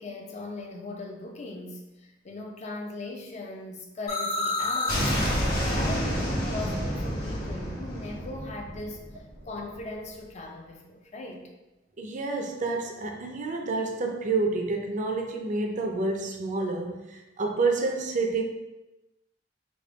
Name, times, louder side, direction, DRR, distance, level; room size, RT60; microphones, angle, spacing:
voice 1, 0.0-11.5, left 2 dB, 40° left, 2 dB, 0.5 m, -39 dB
sound 1, 4.1-9.8, left 1 dB, 55° left, 1.5 m, -29 dB
voice 2, 12.0-18.4, right 3 dB, 40° right, 3 dB, 0.4 m, -29 dB
3.4 x 2.3 x 3.8 m, 1.0 s
head